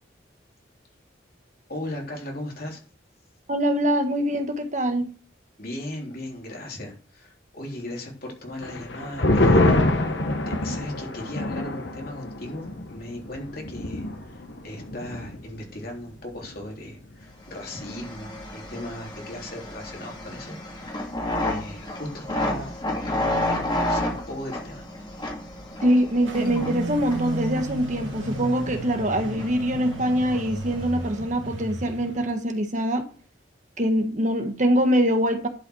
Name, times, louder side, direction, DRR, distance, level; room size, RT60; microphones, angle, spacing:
voice 1, 1.7-2.8 5.6-10.0 10.5-21.0 21.4-24.8, left 1 dB, 50° left, 0 dB, 3.5 m, -37 dB
voice 2, 3.5-5.1 25.8-33.1 33.8-35.5, equal, 40° right, 6 dB, 1.6 m, -23 dB
sound 1, 8.6-15.6 15.9-16.0 16.3-16.8, left 1 dB, 70° left, 1.6 m, -25 dB
sound 2, 17.5-31.3, left 1 dB, 25° left, 2.7 m, -32 dB
sound 3, 26.3-32.3, right 1 dB, 90° right, 2.5 m, -34 dB
11.5 x 5.9 x 6.4 m, 0.39 s
head